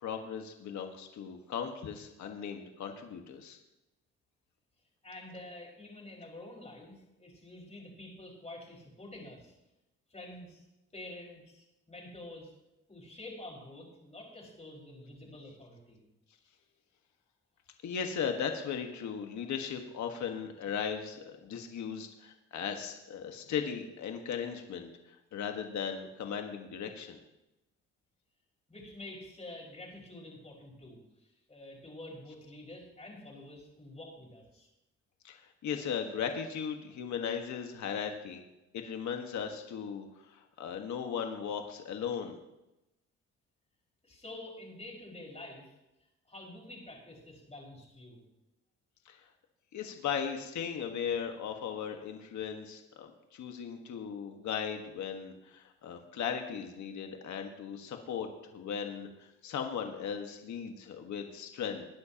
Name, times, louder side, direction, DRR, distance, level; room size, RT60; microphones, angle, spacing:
voice 1, 0.0-3.6 17.8-24.9 25.3-27.2 35.2-38.4 38.7-42.4 49.0-49.2 49.7-61.9, left 7 dB, 70° left, 4 dB, 1.6 m, -37 dB
voice 2, 5.0-9.6 10.1-10.6 10.9-12.5 12.9-16.0 28.7-34.7 44.0-45.7 46.3-48.2, left 1 dB, 20° left, -1 dB, 5.1 m, -48 dB
20.5 x 9.7 x 2.9 m, 0.93 s
cardioid pair, 90°, 30 cm